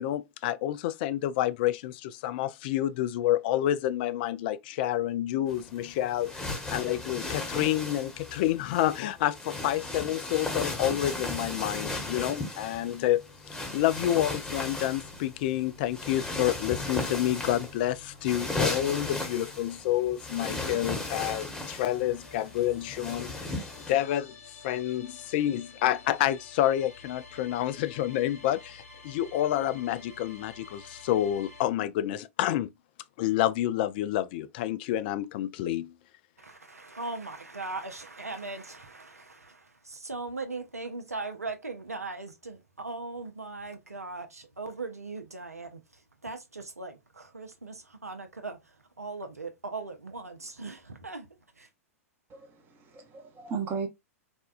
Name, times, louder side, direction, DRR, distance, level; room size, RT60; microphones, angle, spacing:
voice 1, 0.0-13.3 13.7-23.5 23.9-24.4 24.6-32.7 33.2-35.9, left 13 dB, 40° left, 0.3 m, -29 dB
sound 1, 5.5-23.9, left 2 dB, 10° left, 1.0 m, -36 dB
sound 2, 21.6-31.7, left 3 dB, 70° left, 1.3 m, -50 dB
voice 2, 36.4-51.3 51.6-51.7, right 3 dB, 80° right, 0.7 m, -39 dB
voice 3, 52.3-53.9, right 5 dB, 25° right, 0.8 m, -36 dB
4.3 x 2.2 x 2.4 m
figure-of-eight pair, 105°, 8 cm